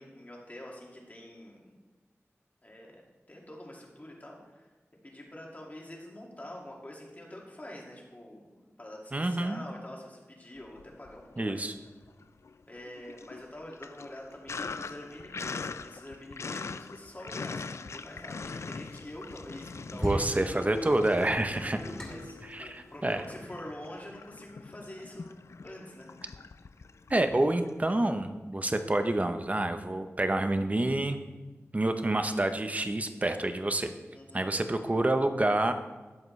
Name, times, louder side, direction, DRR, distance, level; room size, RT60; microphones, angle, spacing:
voice 1, 0.0-1.8 2.6-3.0 3.3-4.7 5.0-11.6 12.7-20.5 21.5-25.4 25.6-26.1 34.1-34.5, left 1 dB, 30° left, -2 dB, 2.2 m, -46 dB
voice 2, 9.1-9.6 11.4-11.7 20.0-21.8 22.5-23.2 27.1-31.2 31.7-33.9 34.3-35.7, right 1 dB, 30° right, 8 dB, 0.8 m, -28 dB
Sink (filling or washing), 10.7-11.5 11.9-28.0, left 4 dB, 70° left, 0.3 m, -43 dB
sound 1, 18.0-23.4, equal, 10° left, 2.6 m, -39 dB
12.0 x 7.8 x 3.2 m, 1.2 s
wide cardioid pair, 70°, 5 cm